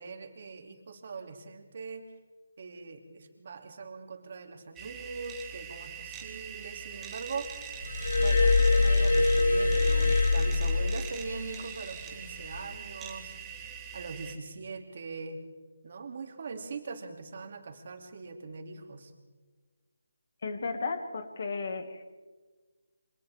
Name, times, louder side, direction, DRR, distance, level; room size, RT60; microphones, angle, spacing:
voice 1, 0.0-2.1 2.6-7.5 8.2-13.3 13.9-15.4 15.8-19.1, right 4 dB, 45° right, 4 dB, 2.9 m, -41 dB
sound 1, 4.8-14.3, right 8 dB, 10° right, 1.4 m, -43 dB
Glass, 7.8-11.4 12.4-12.6, left 3 dB, 90° left, 2.1 m, -24 dB
voice 2, 20.4-22.1, left 4 dB, 45° left, 7 dB, 2.4 m, -34 dB
28.0 x 25.5 x 3.7 m, 1.4 s
hypercardioid pair, 170°, 0 cm